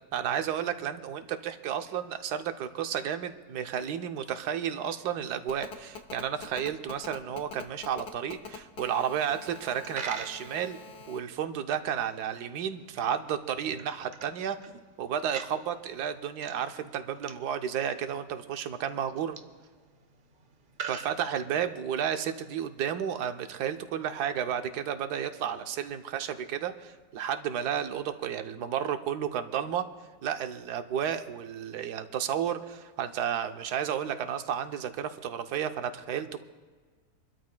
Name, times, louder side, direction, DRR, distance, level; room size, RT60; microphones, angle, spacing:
voice 1, 0.1-10.8 11.1-14.7 15.0-19.4 20.9-29.9 30.2-36.4, right 9 dB, 80° right, 8 dB, 1.3 m, -32 dB
Telephone, 5.5-11.2, left 5 dB, 90° left, 1.5 m, -44 dB
Coin (dropping), 9.7-21.9, right 6 dB, 50° right, 0.6 m, -46 dB
27.0 x 12.5 x 2.2 m, 1.5 s
omnidirectional pair, 1.7 m